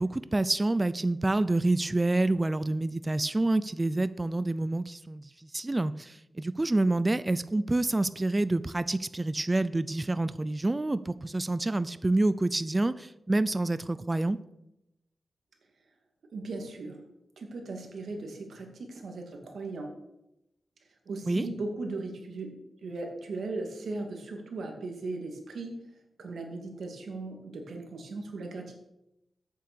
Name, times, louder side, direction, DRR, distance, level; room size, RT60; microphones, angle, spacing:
voice 1, 0.0-5.2 5.5-14.4 21.3-21.5, right 2 dB, 20° right, 15 dB, 0.4 m, -27 dB
voice 2, 16.3-17.0 17.4-19.9 21.1-22.5 22.8-25.7 26.2-28.7, right 3 dB, 75° right, 2 dB, 2.2 m, -37 dB
8.6 x 7.4 x 6.7 m, 0.88 s
wide cardioid pair, 125°, 0 cm